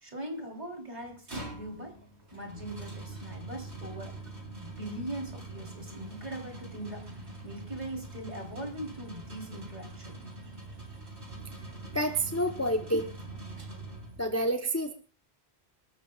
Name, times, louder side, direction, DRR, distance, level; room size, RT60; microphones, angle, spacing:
voice 1, 0.0-2.0 2.3-4.1 4.6-10.2, right 1 dB, 40° right, 2 dB, 3.6 m, -41 dB
sound 1, 1.0-14.4, right 2 dB, 75° right, 4.2 m, -44 dB
voice 2, 11.9-13.1 14.2-14.9, right 1 dB, 15° left, 5 dB, 0.8 m, -28 dB
26.5 x 13.0 x 2.4 m, 0.35 s
omnidirectional pair, 1.1 m